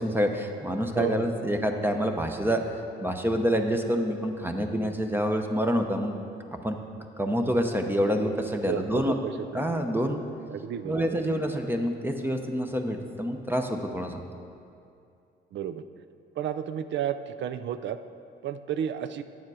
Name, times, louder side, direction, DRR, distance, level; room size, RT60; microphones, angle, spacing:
voice 1, 0.0-2.6 3.0-6.1 6.6-6.8 7.2-9.2 9.5-10.2 10.8-14.2, equal, 10° right, 4 dB, 0.7 m, -27 dB
voice 2, 0.9-1.5 8.7-9.9 10.5-11.4 15.5-15.8 16.4-18.0 18.4-19.2, right 9 dB, 65° right, 11 dB, 0.4 m, -32 dB
9.2 x 7.2 x 4.8 m, 2.5 s
cardioid pair, 90°, 20 cm